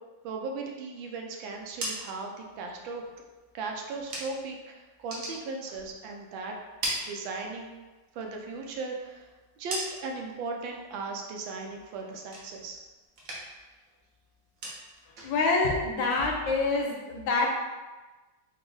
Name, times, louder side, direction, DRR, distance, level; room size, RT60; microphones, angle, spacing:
voice 1, 0.2-3.0 3.5-6.6 7.0-7.7 8.1-9.3 9.6-12.8, right 3 dB, 85° right, 1 dB, 1.4 m, -37 dB
sound 1, 1.5-4.6 4.9-6.2 6.5-7.8 8.2-10.3 10.7-11.2 11.5-12.8 13.1-13.7 14.0-16.8, right 1 dB, 55° right, 1.1 m, -40 dB
voice 2, 15.2-17.5, left 3 dB, 85° left, 0 dB, 1.4 m, -26 dB
4.0 x 2.4 x 3.8 m, 1.2 s
omnidirectional pair, 2.1 m